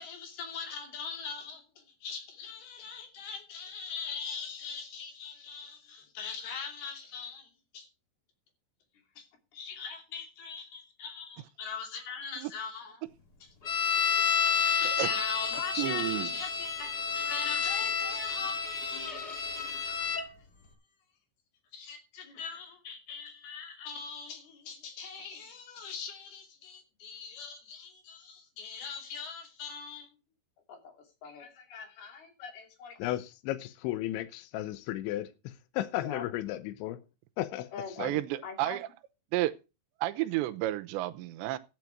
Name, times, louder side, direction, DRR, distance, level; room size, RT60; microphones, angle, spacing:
voice 1, 0.0-7.9 9.2-9.3 9.5-13.0 13.4-13.5 14.4-18.7 19.0-19.2 19.6-20.7 21.7-30.1 30.7-33.0 36.0-36.3 37.7-38.0 38.4-38.8, left 6 dB, 60° left, 4.4 m, -42 dB
sound 1, 13.6-20.2, left 6 dB, 40° left, 1.4 m, -30 dB
voice 2, 15.8-16.3 38.0-38.9 39.3-39.5 40.0-41.6, right 15 dB, 80° right, 3.0 m, -31 dB
voice 3, 33.0-37.0 37.4-37.7 38.0-38.1, left 14 dB, 85° left, 3.2 m, -34 dB
13.0 x 9.5 x 4.6 m
omnidirectional pair, 5.3 m